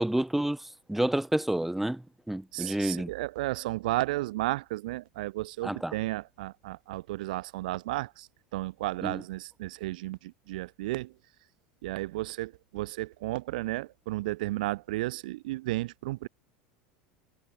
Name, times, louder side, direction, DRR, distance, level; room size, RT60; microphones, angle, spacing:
voice 1, 0.0-3.1 5.6-5.9 9.0-9.2, right 1 dB, 5° right, 1.4 m, -29 dB
voice 2, 2.5-11.1 11.8-16.3, right 18 dB, 70° right, 1.6 m, -33 dB
hypercardioid pair, 90°, 5 cm